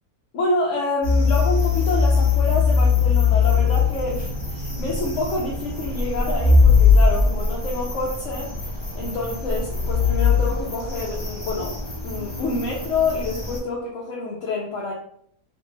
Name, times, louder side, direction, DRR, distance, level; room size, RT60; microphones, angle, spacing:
voice 1, 0.3-8.6 8.9-11.8 12.0-14.9, left 2 dB, 65° left, -4 dB, 0.9 m, -27 dB
sound 1, 1.0-13.6, left 5 dB, 30° left, 0.5 m, -21 dB
3.1 x 2.5 x 3.1 m, 0.64 s
omnidirectional pair, 1.6 m